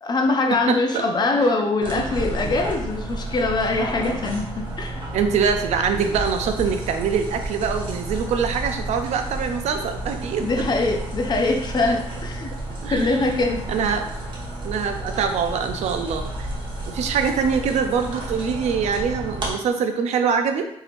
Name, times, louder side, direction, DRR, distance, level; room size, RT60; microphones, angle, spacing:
voice 1, 0.0-5.0 10.4-12.5 12.9-13.6, left 3 dB, 40° left, 4 dB, 0.4 m, -23 dB
voice 2, 0.7-1.1 1.3-1.4 5.1-10.5 11.8-11.9 12.8-14.1 14.6-16.5 16.9-20.7, right 6 dB, 85° right, 6 dB, 0.4 m, -24 dB
sound 1, 1.8-19.5, right 1 dB, 45° right, 1.0 m, -31 dB
3.4 x 2.7 x 2.5 m, 0.77 s
cardioid pair, 115°, 11 cm